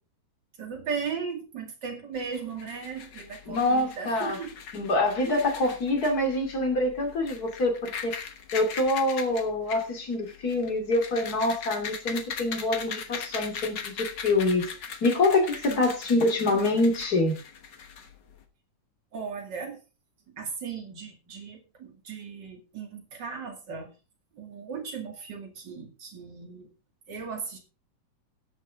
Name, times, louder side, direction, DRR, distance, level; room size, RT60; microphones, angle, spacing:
voice 1, 0.6-4.5 5.3-5.5 12.1-12.2 15.7-15.8 19.1-19.8 20.3-23.9 24.4-26.7 27.1-27.6, right 6 dB, 35° right, 3 dB, 2.6 m, -37 dB
sound 1, 2.1-18.4, left 6 dB, 60° left, 1.2 m, -40 dB
voice 2, 3.5-4.4 4.7-8.1 8.5-14.7 15.0-17.3, left 2 dB, 30° left, 3 dB, 2.6 m, -25 dB
18.0 x 6.8 x 3.7 m, 0.31 s
omnidirectional pair, 3.7 m